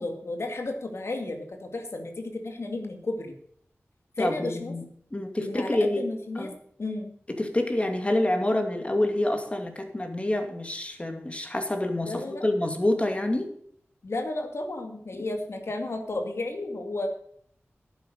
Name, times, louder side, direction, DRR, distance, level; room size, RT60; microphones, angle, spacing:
voice 1, 0.0-3.4 4.2-4.7 5.4-6.5 6.8-7.1 12.0-12.4 14.0-17.1, left 2 dB, 70° left, 5 dB, 2.3 m, -33 dB
voice 2, 4.2-4.8 5.1-6.1 6.4-6.5 7.4-13.5, left 1 dB, 25° left, 5 dB, 2.4 m, -27 dB
11.0 x 8.9 x 6.6 m, 0.64 s
wide cardioid pair, 60°, 5 cm